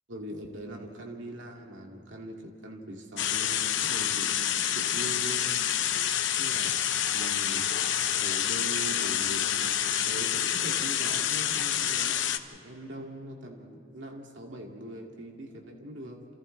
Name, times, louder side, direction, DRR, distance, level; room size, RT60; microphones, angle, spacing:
voice 1, 0.1-5.5 6.3-6.7 7.1-7.7 8.1-16.3, right 1 dB, 80° right, 0 dB, 2.3 m, -42 dB
sound 1, 3.2-12.4, left 10 dB, 80° left, 1.0 m, -28 dB
29.0 x 28.5 x 3.3 m, 3.0 s
head